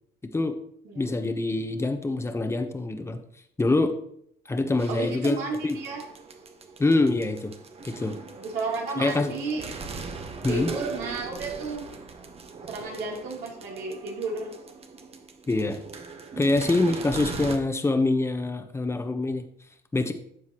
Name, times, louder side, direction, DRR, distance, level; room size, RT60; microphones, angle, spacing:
voice 1, 0.9-3.2 3.6-3.9 4.5-5.4 5.6-5.8 6.8-7.5 7.8-8.2 9.0-9.3 10.4-10.7 15.5-15.8 16.4-19.5 19.9-20.1, left 2 dB, 15° left, 7 dB, 1.1 m, -25 dB
sound 1, 4.8-17.6, right 4 dB, 35° right, 1.3 m, -40 dB
voice 2, 4.9-6.0 8.4-9.6 10.5-11.9 12.7-14.6, right 3 dB, 85° right, -2 dB, 3.5 m, -32 dB
13.0 x 8.0 x 3.1 m, 0.69 s
cardioid pair, 110°, 17 cm